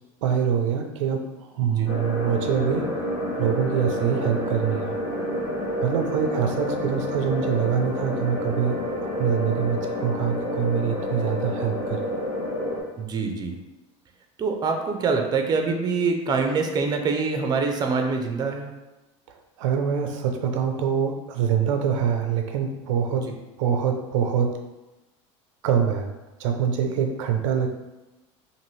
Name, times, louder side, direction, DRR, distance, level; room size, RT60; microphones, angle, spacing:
voice 1, 0.2-2.9 3.4-5.0 5.8-8.8 9.2-12.1 19.3-24.6 25.6-26.1 26.4-27.7, right 7 dB, 85° right, 4 dB, 0.4 m, -25 dB
sound 1, 1.9-12.8, left 1 dB, 80° left, 1.1 m, -29 dB
voice 2, 13.0-13.5 14.4-18.7 23.3-23.4, right 4 dB, 25° right, 4 dB, 0.4 m, -25 dB
2.6 x 2.6 x 3.1 m, 1.0 s
supercardioid pair, 105°, 16 cm